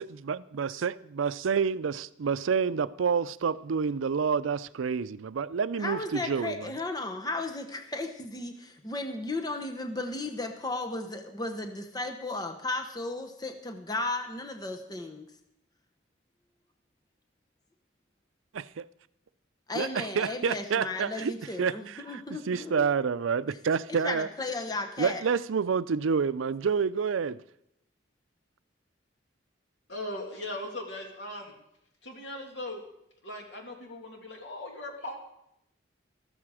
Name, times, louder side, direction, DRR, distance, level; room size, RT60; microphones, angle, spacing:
voice 1, 0.0-6.7 18.5-18.9 19.7-21.3 21.6-24.3 25.0-27.4, right 6 dB, 90° right, 0.4 m, -28 dB
voice 2, 5.7-15.3 19.7-22.9 24.0-25.2, left 2 dB, 20° left, 0.9 m, -35 dB
voice 3, 29.9-31.5 32.0-32.8 33.2-35.2, left 1 dB, 70° left, 2.7 m, -39 dB
13.5 x 13.5 x 4.9 m
head